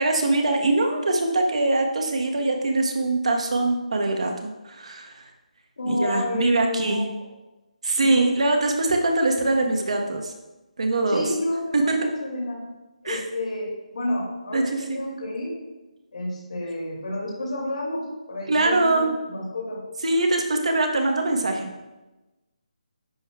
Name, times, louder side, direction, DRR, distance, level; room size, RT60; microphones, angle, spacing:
voice 1, 0.0-5.3 5.8-7.0 7.8-10.3 10.8-11.3 11.7-12.1 13.0-13.2 14.5-15.0 18.5-19.1 20.0-21.7, right 2 dB, 55° right, 3 dB, 1.0 m, -23 dB
voice 2, 5.8-7.0 8.0-8.2 11.1-12.7 13.0-15.5 16.1-19.8, left 1 dB, 65° left, -3 dB, 2.4 m, -30 dB
10.5 x 6.2 x 2.3 m, 1.1 s
hypercardioid pair, 180°, 4 cm